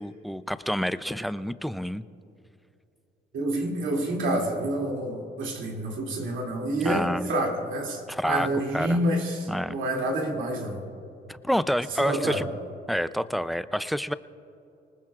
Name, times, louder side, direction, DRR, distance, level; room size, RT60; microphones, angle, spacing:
voice 1, 0.0-2.0 6.8-7.3 8.1-8.5 8.7-9.0 9.5-9.8 11.3-12.5 12.9-14.1, equal, ahead, 13 dB, 0.5 m, -28 dB
voice 2, 3.3-10.9 12.0-12.5, right 1 dB, 75° right, 0 dB, 2.8 m, -28 dB
26.0 x 19.5 x 2.5 m, 2.7 s
cardioid pair, 90°, 20 cm